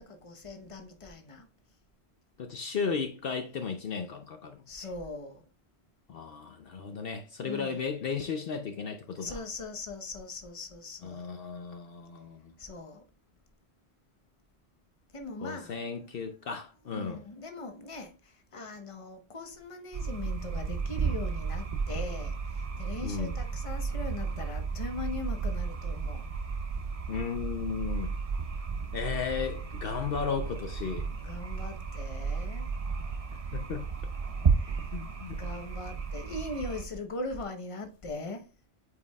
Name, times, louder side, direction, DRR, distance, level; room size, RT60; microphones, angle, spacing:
voice 1, 0.0-1.5 4.7-5.4 7.4-7.8 9.1-11.3 12.6-13.0 15.1-15.9 16.9-18.1 18.5-26.2 31.2-32.7 34.6-34.8 35.4-38.4, left 2 dB, 30° left, 1.0 m, -40 dB
voice 2, 2.4-4.6 6.1-9.4 11.0-12.4 15.4-17.2 23.0-23.4 27.1-28.1 28.9-31.1 33.5-33.8 34.9-35.4, left 6 dB, 65° left, 0.9 m, -35 dB
sound 1, 19.9-36.9, right 5 dB, 40° right, 0.7 m, -33 dB
8.4 x 4.7 x 2.3 m
omnidirectional pair, 1.1 m